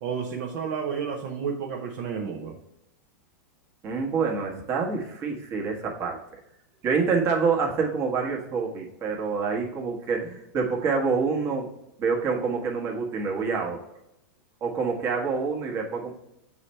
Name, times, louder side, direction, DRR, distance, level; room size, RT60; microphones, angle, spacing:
voice 1, 0.0-2.6, right 6 dB, 45° right, -1 dB, 0.8 m, -31 dB
voice 2, 3.8-6.2 6.8-11.7 12.0-13.8 14.6-16.1, right 5 dB, 30° right, 0 dB, 1.3 m, -27 dB
6.9 x 3.3 x 4.2 m, 0.81 s
supercardioid pair, 150°, 10 cm